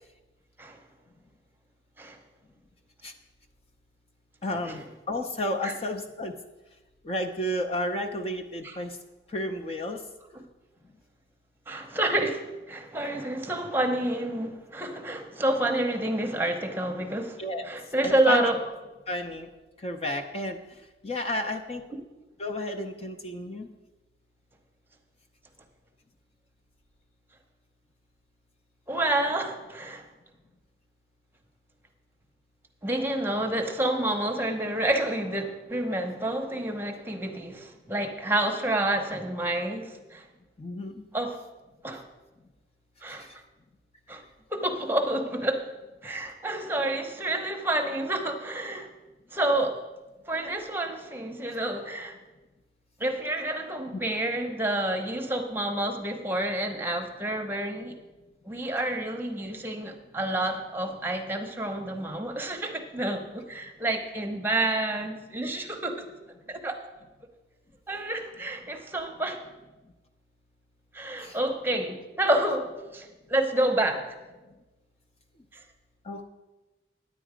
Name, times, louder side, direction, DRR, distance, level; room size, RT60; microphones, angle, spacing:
voice 1, 4.4-6.3 7.0-9.0 9.3-10.0 17.4-17.6 18.0-18.5 19.1-19.5 19.8-20.6 21.0-21.8 22.4-23.7 40.6-41.0 43.2-43.3 71.2-71.4 76.1-76.2, left 1 dB, 35° left, 4 dB, 0.6 m, -32 dB
voice 2, 11.7-18.6 21.9-22.0 28.9-30.1 32.8-40.2 41.1-41.4 41.8-42.0 43.0-43.3 44.1-44.2 44.5-45.7 46.0-48.9 49.3-49.8 50.3-52.2 53.0-58.0 58.4-66.1 66.5-66.8 67.9-69.4 70.9-74.1 75.5-75.6, right 1 dB, 10° right, 3 dB, 0.8 m, -29 dB
10.0 x 8.5 x 5.0 m, 1.1 s
head